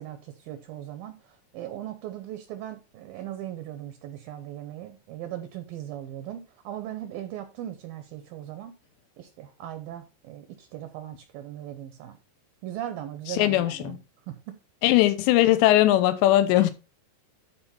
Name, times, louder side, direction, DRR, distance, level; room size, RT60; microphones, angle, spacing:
voice 1, 0.0-8.7 9.2-12.2 12.6-14.0 14.3-14.6, right 12 dB, 80° right, 2.1 m, -38 dB
voice 2, 13.3-14.0 14.8-16.7, left 14 dB, 85° left, 3.0 m, -20 dB
12.0 x 4.5 x 4.3 m
omnidirectional pair, 5.0 m